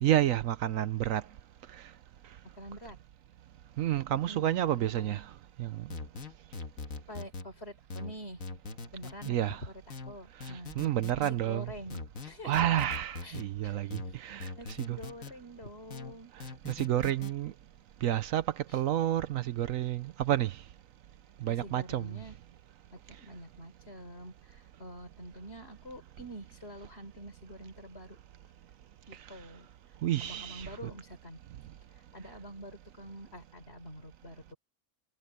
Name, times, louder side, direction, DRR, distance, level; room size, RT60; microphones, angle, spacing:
voice 1, 0.0-1.2 3.8-5.3 5.6-5.9 9.3-9.6 10.8-11.7 12.4-15.0 16.6-17.5 18.0-20.6 21.4-22.2 30.0-30.9, right 12 dB, 75° right, 1.0 m, -30 dB
voice 2, 2.5-3.0 4.2-5.2 7.1-8.4 8.9-9.7 10.1-10.8 11.2-12.5 13.2-13.9 14.5-16.3 18.7-18.8 21.5-22.4 22.9-28.2 29.1-29.7 30.2-31.4 32.1-34.6, equal, 45° left, 5.0 m, -46 dB
sound 1, 5.9-7.5 7.9-9.3 9.9-11.3 11.9-13.5 13.9-15.3 15.9-17.3, left 3 dB, 65° left, 1.9 m, -42 dB
omnidirectional pair, 1.5 m